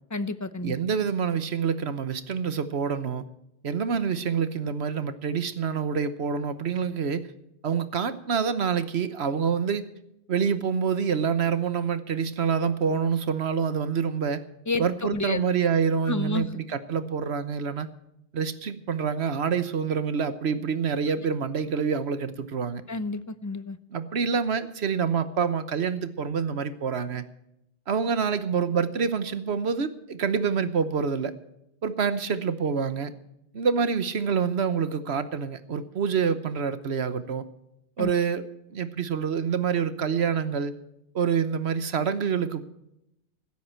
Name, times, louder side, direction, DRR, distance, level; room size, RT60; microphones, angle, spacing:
voice 1, 0.1-0.8 14.7-15.4 16.1-16.6 22.9-23.8 38.0-38.1, left 3 dB, 20° left, 13 dB, 0.6 m, -30 dB
voice 2, 0.6-3.2 3.6-7.3 7.6-9.8 10.3-14.4 14.8-17.9 18.3-22.8 23.9-27.2 27.9-31.3 31.8-33.1 33.5-37.4 38.0-40.7 41.1-42.6, right 6 dB, 70° right, 12 dB, 1.3 m, -27 dB
16.0 x 13.0 x 4.5 m, 0.84 s
omnidirectional pair, 1.1 m